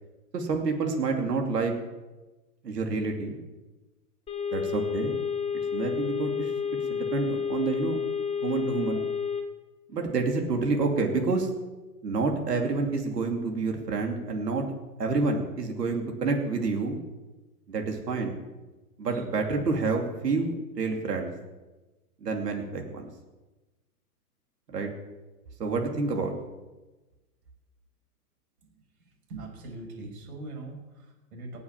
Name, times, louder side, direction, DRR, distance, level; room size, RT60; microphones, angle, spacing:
voice 1, 0.3-1.7 2.6-3.4 4.5-5.1 5.7-6.5 6.9-8.0 8.4-9.0 9.9-11.5 12.0-14.6 15.0-17.0 17.7-18.4 19.0-21.3 22.2-23.1 24.7-24.9 25.6-26.3, right 4 dB, 90° right, 3 dB, 2.8 m, -28 dB
sound 1, 4.3-9.4, left 6 dB, 15° left, 2.0 m, -30 dB
voice 2, 29.3-31.6, right 2 dB, 65° right, 2 dB, 5.8 m, -41 dB
18.5 x 7.2 x 7.3 m, 1.1 s
hypercardioid pair, 135°, 47 cm